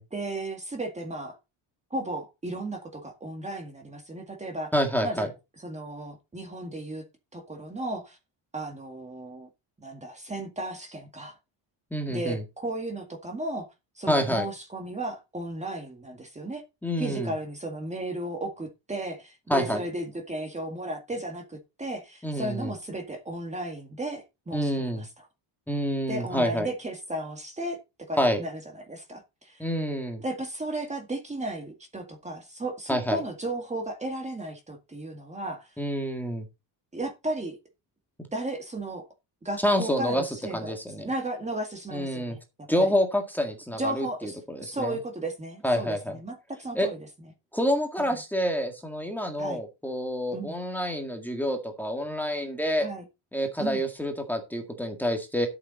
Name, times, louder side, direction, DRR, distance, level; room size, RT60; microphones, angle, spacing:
voice 1, 0.1-1.4 1.9-4.7 5.0-5.3 5.6-7.0 7.3-8.2 8.5-9.5 9.8-11.3 12.1-13.7 14.0-16.6 17.0-25.3 26.1-27.8 28.1-29.6 30.2-35.7 36.9-37.6 38.3-39.1 39.4-42.4 42.8-42.9 43.7-47.0 48.0-48.1 49.4-49.6 50.3-50.6 52.8-53.0 53.6-53.8, right 1 dB, 15° right, 1.9 m, -35 dB
voice 2, 4.7-5.3 11.9-12.4 14.1-14.5 16.8-17.3 19.5-19.8 22.2-22.7 24.5-25.0 25.7-26.7 28.2-28.4 29.6-30.2 32.9-33.2 35.8-36.5 39.6-41.1 41.9-42.4 42.7-45.0 45.6-46.2 46.7-46.9 47.5-52.9 53.3-55.5, equal, 5° left, 1.9 m, -27 dB
13.0 x 7.0 x 4.2 m
cardioid pair, 175°, 49 cm